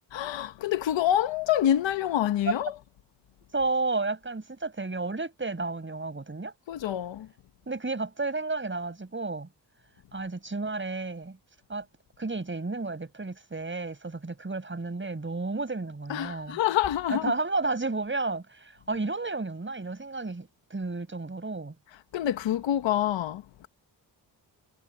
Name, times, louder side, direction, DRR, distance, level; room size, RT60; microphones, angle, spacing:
voice 1, 0.1-2.7 6.7-7.3 16.1-17.3 22.1-23.7, left 11 dB, 90° left, 1.2 m, -27 dB
voice 2, 3.5-6.5 7.7-9.5 10.1-11.4 11.7-11.9 12.2-16.6 17.1-21.7, right 3 dB, 25° right, 5.8 m, -32 dB
cardioid pair, 70°, 44 cm